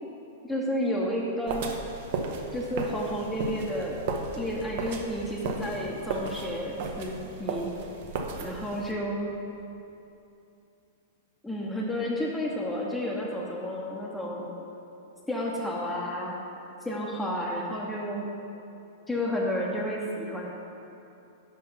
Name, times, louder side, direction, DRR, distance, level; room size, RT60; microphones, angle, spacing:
voice 1, 0.4-1.7 2.5-4.0 4.3-7.7 8.4-9.3 11.4-14.6 15.3-16.4 16.8-18.2 19.1-20.5, equal, 5° left, -4 dB, 0.7 m, -31 dB
sound 1, 1.5-8.9, right 4 dB, 60° right, 0.7 m, -35 dB
5.7 x 5.6 x 5.5 m, 2.7 s
hypercardioid pair, 135°, 0 cm